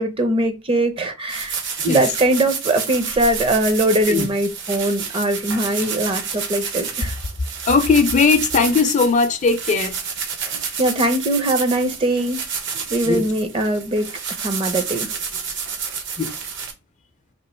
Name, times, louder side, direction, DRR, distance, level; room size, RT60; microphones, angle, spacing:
voice 1, 0.0-7.2 10.4-12.4 12.9-14.1 14.4-15.1, right 1 dB, 25° right, 0.6 m, -21 dB
sound 1, 1.3-16.7, right 6 dB, 60° right, 0.9 m, -29 dB
voice 2, 7.7-10.0 13.0-13.2 16.2-16.3, left 4 dB, 35° left, 0.4 m, -18 dB
3.0 x 2.9 x 4.2 m
head